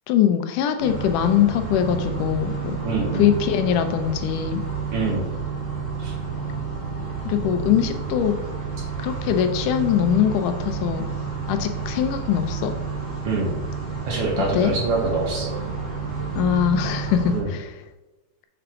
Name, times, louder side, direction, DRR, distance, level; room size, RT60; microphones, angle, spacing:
voice 1, 0.1-2.8 3.1-4.6 7.3-8.3 9.0-11.0 11.5-12.7 14.5-14.7 16.4-17.7, left 9 dB, 85° left, 8 dB, 2.3 m, -22 dB
sound 1, 0.8-17.4, right 5 dB, 35° right, 1.4 m, -30 dB
voice 2, 2.8-3.3 4.9-5.3 6.0-6.1 13.2-13.5 14.1-15.6 17.3-17.5, right 3 dB, 55° right, -1 dB, 1.9 m, -25 dB
7.1 x 6.9 x 3.7 m, 1.1 s
omnidirectional pair, 3.6 m